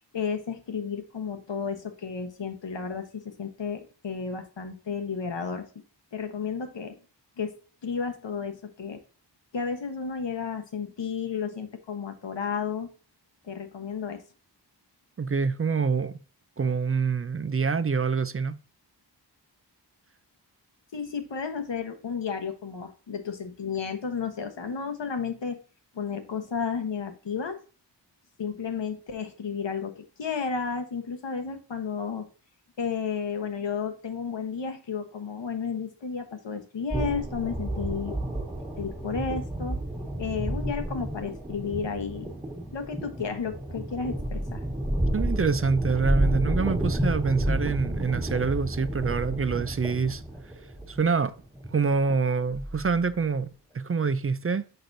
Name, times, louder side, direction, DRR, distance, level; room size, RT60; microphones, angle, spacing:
voice 1, 0.1-5.7 6.1-7.0 7.4-7.5 7.8-9.0 9.5-12.9 13.4-14.2 20.9-25.6 25.9-27.6 28.4-32.3 32.8-38.2 38.8-39.8 40.2-42.3 42.7-44.6, left 6 dB, 80° left, 1.1 m, -32 dB
voice 2, 15.2-16.2 16.6-18.5 45.1-50.2 50.9-51.3 51.7-53.5 53.7-54.7, right 5 dB, 35° right, 0.4 m, -26 dB
sound 1, 36.9-53.1, right 1 dB, 10° right, 1.6 m, -31 dB
6.6 x 5.9 x 2.6 m
wide cardioid pair, 75°, 42 cm